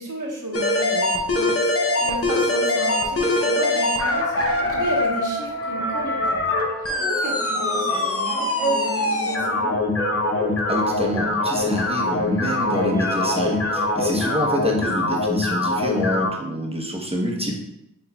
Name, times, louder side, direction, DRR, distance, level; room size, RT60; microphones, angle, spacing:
voice 1, 0.0-6.4 6.8-9.8, right 1 dB, 60° right, -2 dB, 1.1 m, -33 dB
sound 1, 0.5-16.3, left 2 dB, 40° left, 0.7 m, -23 dB
sound 2, 2.4-14.5, right 1 dB, 20° left, 1.5 m, -33 dB
voice 2, 10.7-17.6, equal, 15° right, -1 dB, 0.8 m, -27 dB
5.7 x 3.1 x 2.2 m, 0.84 s
cardioid pair, 45°, 35 cm